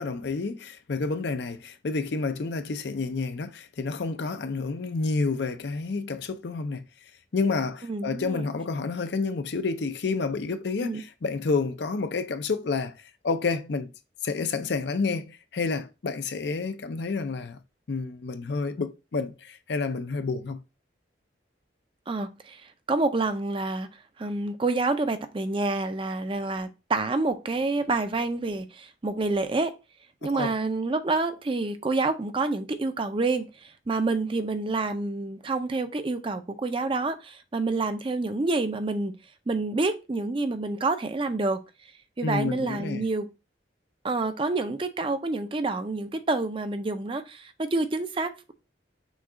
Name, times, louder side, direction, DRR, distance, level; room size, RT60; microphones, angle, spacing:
voice 1, 0.0-6.8 7.3-13.9 14.2-17.6 17.9-20.6 30.3-30.5 42.2-43.1, left 4 dB, 60° left, 0.5 m, -29 dB
voice 2, 7.8-8.5 10.8-11.0 22.1-23.9 24.2-29.7 30.2-39.2 39.5-41.6 42.2-43.3 44.0-48.5, right 3 dB, 30° right, 0.4 m, -28 dB
6.2 x 2.3 x 3.7 m
head